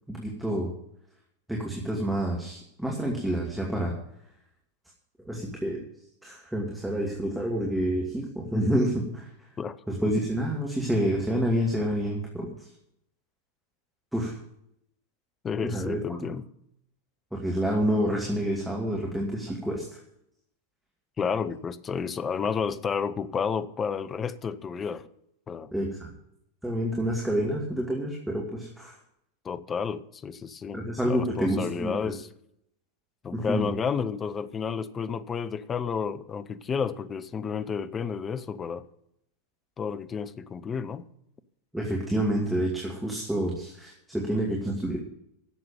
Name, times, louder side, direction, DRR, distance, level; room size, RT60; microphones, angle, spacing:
voice 1, 0.1-0.7 1.5-3.9 5.2-5.8 6.2-9.5 9.9-12.7 14.1-14.4 15.6-16.3 17.3-20.0 25.7-26.1 26.6-29.0 30.7-32.1 33.3-33.7 41.7-45.0, right 1 dB, 5° right, -1 dB, 2.5 m, -28 dB
voice 2, 15.4-16.4 21.2-25.1 25.5-25.7 29.4-32.3 33.2-38.8 39.8-41.1, left 6 dB, 20° left, 13 dB, 0.8 m, -31 dB
11.5 x 7.8 x 9.2 m, 0.75 s
figure-of-eight pair, 90°, 0 cm